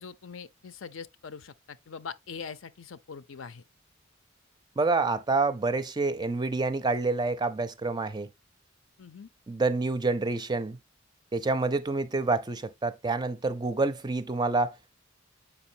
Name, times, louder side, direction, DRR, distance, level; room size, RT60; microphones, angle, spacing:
voice 1, 0.0-3.6 9.0-9.3, left 6 dB, 75° left, 0.6 m, -42 dB
voice 2, 4.8-8.3 9.5-10.8 11.3-14.8, right 3 dB, 20° right, 0.4 m, -27 dB
7.1 x 5.2 x 2.8 m
head